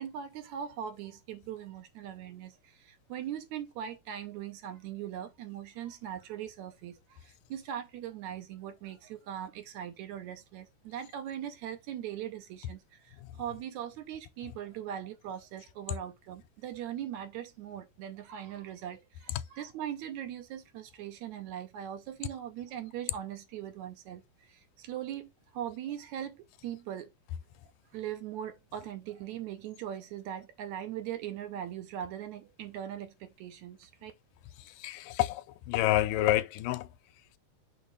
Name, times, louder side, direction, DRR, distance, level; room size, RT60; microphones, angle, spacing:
voice 1, 0.0-12.8 13.0-24.2 24.5-27.1 27.9-34.1, right 10 dB, 70° right, 2.0 m, -40 dB
voice 2, 34.8-35.4 35.7-36.9, left 14 dB, 90° left, 2.2 m, -27 dB
6.4 x 3.0 x 5.2 m
omnidirectional pair, 3.7 m